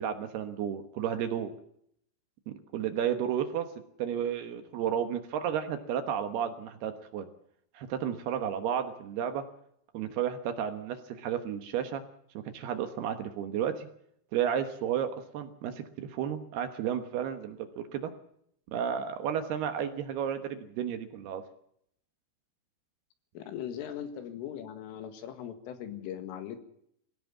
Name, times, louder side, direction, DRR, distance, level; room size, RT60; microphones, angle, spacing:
voice 1, 0.0-1.5 2.5-3.7 4.0-7.3 7.7-9.4 9.9-12.0 12.5-13.9 14.3-18.1 18.7-21.4, right 9 dB, 70° right, 8 dB, 2.8 m, -32 dB
voice 2, 23.4-26.6, left 10 dB, 85° left, 9 dB, 4.4 m, -39 dB
21.0 x 17.0 x 7.4 m, 0.70 s
omnidirectional pair, 5.6 m